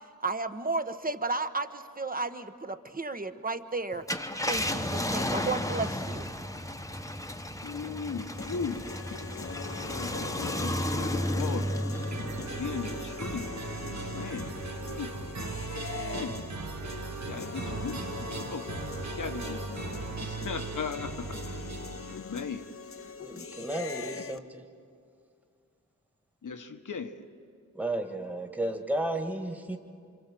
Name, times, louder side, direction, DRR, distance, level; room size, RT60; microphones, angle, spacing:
voice 1, 0.2-4.1 4.5-6.3, right 3 dB, 25° right, 9 dB, 1.1 m, -33 dB
Car, 3.9-14.8 15.3-15.4 17.4-17.6, left 1 dB, 10° left, 1.1 m, -34 dB
voice 2, 7.6-11.8 12.3-13.5 14.0-14.5 14.9-15.3 16.1-16.4 17.2-18.7 19.2-21.7 22.0-22.7 26.4-27.2, left 5 dB, 75° left, 8 dB, 1.4 m, -38 dB
sound 1, 8.4-24.4, left 5 dB, 45° left, 0.8 m, -42 dB
sound 2, 11.9-22.2, right 4 dB, 60° right, 1.5 m, -38 dB
voice 3, 23.2-24.7 27.8-29.8, right 1 dB, 5° right, 4 dB, 1.7 m, -33 dB
26.5 x 26.5 x 7.7 m, 2.3 s
wide cardioid pair, 70°, 31 cm